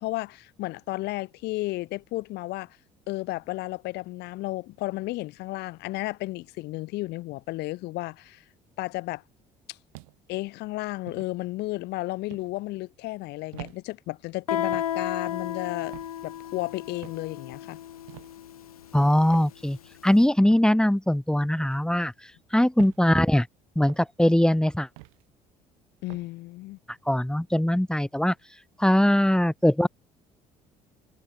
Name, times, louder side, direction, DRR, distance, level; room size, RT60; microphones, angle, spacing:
voice 1, 0.0-2.8 3.1-8.4 8.8-9.2 9.7-9.8 10.3-15.9 16.2-17.8 26.0-26.8, left 19 dB, 65° left, 2.1 m, -33 dB
sound 1, 9.9-10.4 11.1-11.3 12.3-12.5 13.5-13.8 14.7-15.0 15.9-16.2 17.0-17.3 18.1-18.3 19.3-19.6 20.4-20.7 21.6-21.8 22.8-23.0 23.8-24.1 25.0-25.2 26.1-26.3, right 28 dB, 75° right, 6.0 m, -44 dB
Guitar, 14.5-19.9, left 10 dB, 90° left, 7.0 m, -33 dB
voice 2, 18.9-19.8 20.0-22.1 22.5-23.5 23.8-24.9 27.1-28.3 28.8-29.9, left 1 dB, 5° left, 2.4 m, -21 dB
hypercardioid pair, 60°, 18 cm